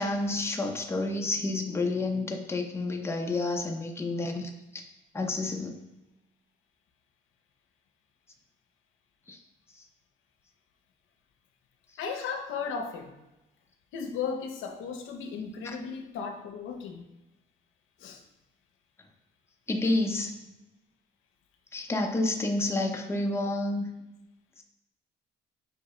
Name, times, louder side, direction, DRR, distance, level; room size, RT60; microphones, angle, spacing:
voice 1, 0.0-4.8 5.1-5.8 9.3-9.4 15.6-15.8 19.7-20.4 21.7-23.9, left 2 dB, 15° left, 1 dB, 0.6 m, -29 dB
voice 2, 12.0-13.1 13.9-17.1 18.0-18.2, left 6 dB, 85° left, 4 dB, 0.6 m, -35 dB
5.3 x 2.8 x 3.1 m, 0.98 s
cardioid pair, 90°, 20 cm